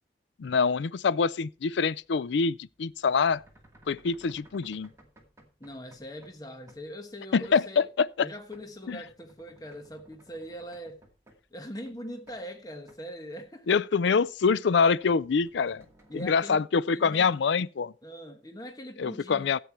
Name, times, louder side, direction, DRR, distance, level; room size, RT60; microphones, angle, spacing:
voice 1, 0.4-3.4 3.9-4.9 7.3-8.3 8.9-9.0 13.7-15.8 16.1-17.9 19.0-19.6, left 5 dB, 75° left, 0.4 m, -25 dB
sound 1, 1.4-6.4 6.7-6.9 7.4-7.8 8.1-11.6 11.9-12.5 12.8-13.1 13.5-13.6 14.2-16.3, right 1 dB, 15° right, 2.2 m, -59 dB
voice 2, 5.6-7.9 8.2-11.0 11.5-13.7 16.1-17.3 18.0-19.6, equal, 20° left, 1.3 m, -42 dB
13.5 x 8.2 x 4.5 m
head